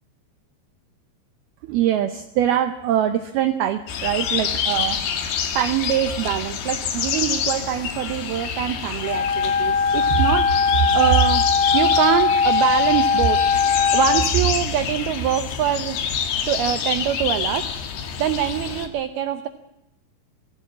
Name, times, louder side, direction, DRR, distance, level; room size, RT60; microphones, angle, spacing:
voice 1, 1.6-5.0 5.6-11.5 11.7-13.4 13.9-16.0 16.5-17.7 18.2-19.5, right 10 dB, 85° right, 9 dB, 2.2 m, -23 dB
sound 1, 3.9-18.9, left 7 dB, 60° left, 3.6 m, -27 dB
Wind instrument woodwind instrument, 9.0-14.3, left 5 dB, 85° left, 2.0 m, -20 dB
22.0 x 15.0 x 8.5 m, 0.87 s
omnidirectional pair, 5.6 m